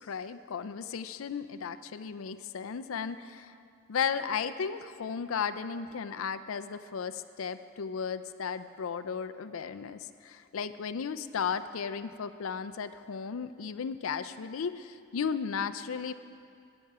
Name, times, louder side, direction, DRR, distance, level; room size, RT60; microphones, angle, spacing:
voice 1, 0.0-3.5 3.9-16.1, left 6 dB, 80° left, 12 dB, 0.5 m, -35 dB
14.5 x 8.9 x 4.8 m, 2.4 s
head